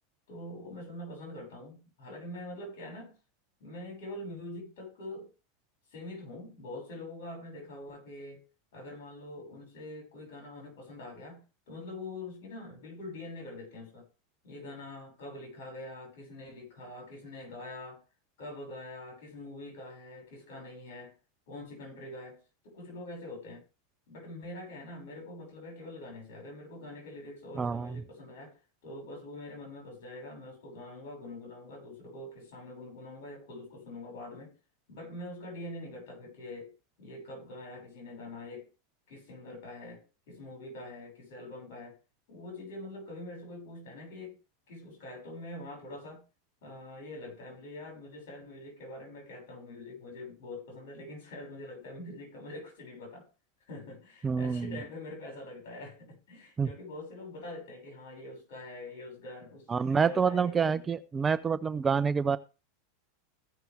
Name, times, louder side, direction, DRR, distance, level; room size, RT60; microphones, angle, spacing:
voice 1, 0.3-3.2 3.6-5.3 5.9-8.4 8.7-14.1 14.4-18.0 18.4-21.1 21.5-23.6 24.1-34.5 34.9-36.7 37.0-38.7 39.1-42.0 42.3-44.4 44.7-46.2 46.6-53.3 53.7-60.9, left 2 dB, 70° left, 6.4 m, -44 dB
voice 2, 27.6-28.0 54.2-54.8 56.6-56.7 59.7-62.4, right 6 dB, 20° right, 0.6 m, -27 dB
15.5 x 5.9 x 3.6 m
hypercardioid pair, 110°, 0 cm